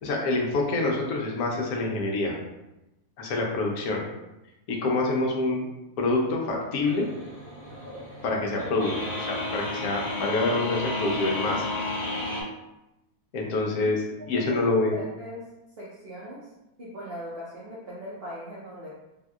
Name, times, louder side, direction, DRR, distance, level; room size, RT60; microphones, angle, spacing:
voice 1, 0.0-2.4 3.2-4.0 4.7-5.7 6.0-7.1 8.2-11.7 13.3-15.0, left 2 dB, 70° left, -1 dB, 1.0 m, -26 dB
sound 1, 6.8-12.4, left 1 dB, 30° right, 1.7 m, -32 dB
voice 2, 14.5-15.4 15.8-16.4 16.8-18.9, equal, 70° right, -6 dB, 0.5 m, -39 dB
3.5 x 2.6 x 2.3 m, 0.96 s
omnidirectional pair, 1.7 m